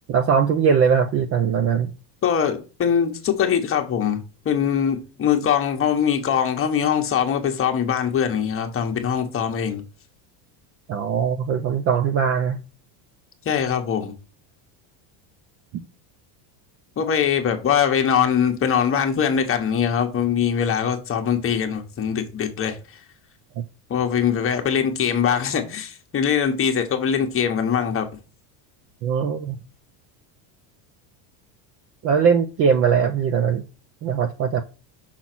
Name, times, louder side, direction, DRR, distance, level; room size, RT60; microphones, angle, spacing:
voice 1, 0.1-1.9 10.9-12.6 29.0-29.6 32.0-33.6 34.0-34.6, right 7 dB, 30° right, 0.4 m, -20 dB
voice 2, 2.2-9.8 13.4-14.1 17.0-22.8 23.9-28.1, left 8 dB, 25° left, 1.1 m, -22 dB
5.9 x 3.9 x 6.0 m
cardioid pair, 145°, 49 cm